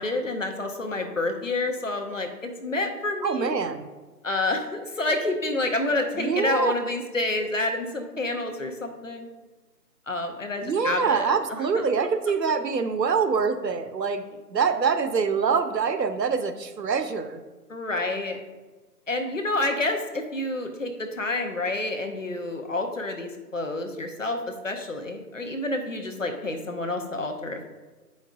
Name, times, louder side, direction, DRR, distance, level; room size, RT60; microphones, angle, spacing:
voice 1, 0.0-3.5 4.2-9.3 10.1-11.8 17.7-18.4 19.1-27.6, left 2 dB, 50° left, 5 dB, 0.7 m, -29 dB
voice 2, 3.2-3.9 6.2-6.7 10.6-14.2 14.5-17.4, right 5 dB, 80° right, 9 dB, 0.7 m, -25 dB
7.8 x 5.2 x 2.5 m, 1.2 s
figure-of-eight pair, 170°, 49 cm